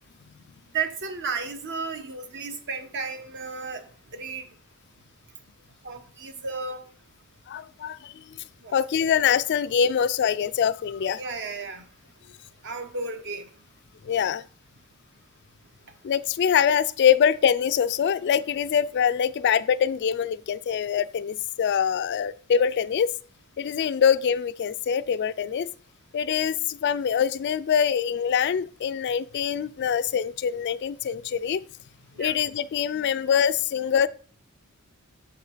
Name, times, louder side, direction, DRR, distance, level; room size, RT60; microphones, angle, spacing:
voice 1, 0.7-3.8 4.1-4.4 5.8-6.8 8.6-8.8 11.1-11.8 12.6-13.5 32.2-32.3, right 4 dB, 55° right, 1.0 m, -33 dB
voice 2, 7.5-8.4 8.7-11.2 14.0-14.4 16.0-23.1 23.6-25.7 26.1-31.6 32.2-34.1, left 8 dB, 50° left, 0.3 m, -24 dB
7.2 x 4.8 x 4.6 m
head